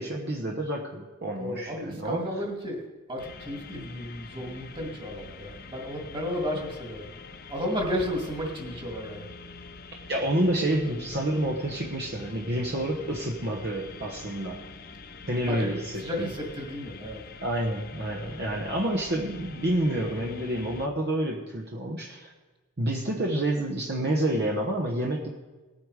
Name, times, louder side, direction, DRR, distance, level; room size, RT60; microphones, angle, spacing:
voice 1, 0.0-2.3 10.1-14.6 15.3-16.3 17.4-22.3 22.8-25.3, right 1 dB, 50° right, 0 dB, 1.1 m, -28 dB
voice 2, 1.4-2.8 3.1-7.1 7.5-9.3 15.5-17.2, equal, 25° right, 0 dB, 2.2 m, -33 dB
sound 1, 3.2-20.9, left 3 dB, 45° left, 0.8 m, -45 dB
18.5 x 8.7 x 4.9 m, 1.3 s
head